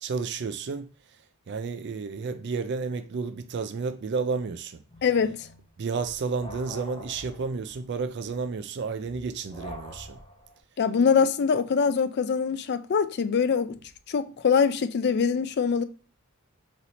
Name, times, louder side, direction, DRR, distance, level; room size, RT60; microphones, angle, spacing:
voice 1, 0.0-0.9 1.5-4.8 5.8-10.2, right 4 dB, 50° right, 0.4 m, -31 dB
sound 1, 4.9-10.6, equal, 25° left, 0.9 m, -45 dB
voice 2, 5.0-5.5 10.8-13.7 14.1-15.8, left 6 dB, 50° left, 0.4 m, -23 dB
4.0 x 3.1 x 4.1 m
head